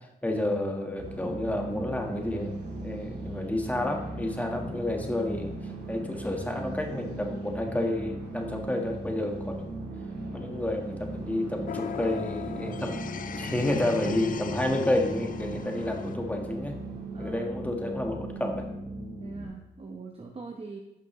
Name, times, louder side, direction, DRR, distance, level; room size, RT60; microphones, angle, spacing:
voice 1, 0.0-2.5 2.8-9.8 10.3-12.9 13.3-16.8 17.2-18.7, left 1 dB, 10° left, 2 dB, 1.5 m, -30 dB
sound 1, 1.0-19.5, right 1 dB, 80° right, 2.2 m, -38 dB
sound 2, 11.7-16.1, left 9 dB, 50° left, 0.4 m, -37 dB
voice 2, 17.1-17.4 19.2-20.8, right 4 dB, 35° right, 1 dB, 0.9 m, -42 dB
11.5 x 5.8 x 3.2 m, 0.90 s
cardioid pair, 85°, 18 cm